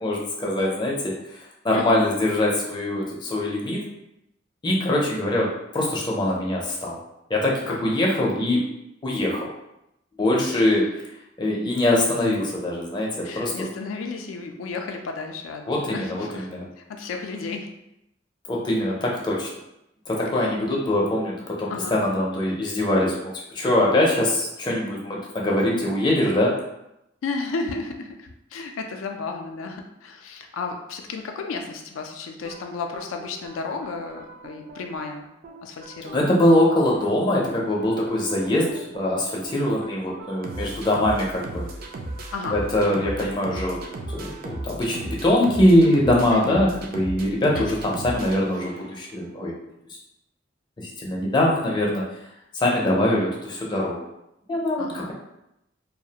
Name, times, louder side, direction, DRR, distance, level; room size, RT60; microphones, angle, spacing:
voice 1, 0.0-1.2 1.6-3.8 4.6-7.0 7.3-8.6 9.0-9.5 10.2-10.8 11.4-13.5 15.7-16.7 18.5-19.5 20.1-26.6 36.1-41.7 42.5-43.8 44.1-49.5 50.8-52.1 52.5-54.0 54.5-55.1, left 1 dB, 25° left, -3 dB, 0.4 m, -23 dB
voice 2, 1.7-2.0 7.6-8.0 10.5-10.9 13.2-16.5 16.8-17.7 20.3-20.6 21.7-22.0 27.2-35.3 35.6-36.4 42.3-43.0 46.3-46.7 47.5-47.8 54.8-55.1, left 4 dB, 90° left, 3 dB, 0.3 m, -33 dB
sound 1, 32.4-49.1, right 2 dB, 50° right, 0.3 m, -37 dB
2.3 x 2.0 x 2.7 m, 0.86 s
head